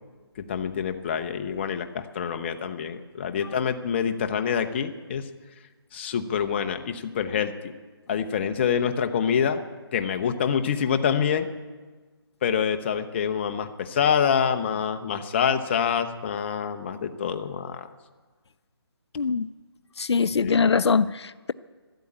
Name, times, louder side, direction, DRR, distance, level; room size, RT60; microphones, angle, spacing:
voice 1, 0.4-5.3 5.9-7.7 8.1-9.6 9.9-11.5 12.4-17.9 20.3-20.7, left 7 dB, 25° left, 8 dB, 0.8 m, -26 dB
voice 2, 19.2-19.5 20.0-21.5, left 5 dB, 80° left, 15 dB, 0.5 m, -23 dB
13.0 x 12.0 x 8.6 m, 1.3 s
hypercardioid pair, 160°, 14 cm